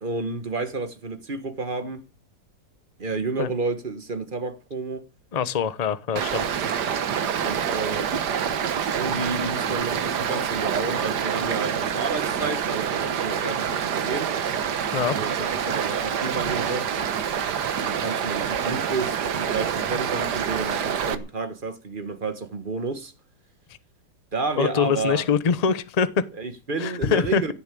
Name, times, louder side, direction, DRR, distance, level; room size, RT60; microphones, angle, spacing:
voice 1, 0.0-2.1 3.0-5.0 7.2-8.3 8.6-14.3 15.1-16.9 17.7-23.1 24.3-25.3 26.4-27.5, right 3 dB, 30° right, 1.2 m, -31 dB
voice 2, 5.3-6.5 14.9-15.2 24.6-26.2 26.8-27.5, left 6 dB, 40° left, 0.5 m, -24 dB
Stream, 6.2-21.2, right 8 dB, 65° right, 1.7 m, -26 dB
16.0 x 7.1 x 9.1 m
omnidirectional pair, 1.9 m